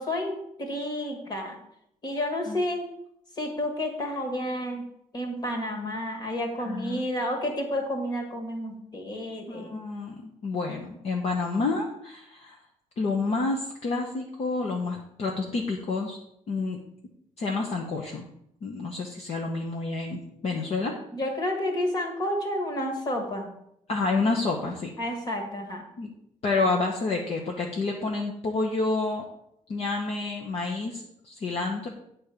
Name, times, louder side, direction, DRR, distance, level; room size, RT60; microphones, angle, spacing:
voice 1, 0.0-1.6 2.0-2.8 3.4-4.8 5.1-9.8 21.1-23.5 25.0-25.8, left 1 dB, 30° left, 2 dB, 1.9 m, -30 dB
voice 2, 6.6-7.1 9.5-12.6 13.0-16.2 16.5-16.8 17.4-18.3 18.6-20.9 23.9-24.9 26.0-26.1 26.4-29.2 29.7-31.9, left 3 dB, 50° left, 0 dB, 1.1 m, -29 dB
9.4 x 4.3 x 6.8 m, 0.76 s
cardioid pair, 170°, 14 cm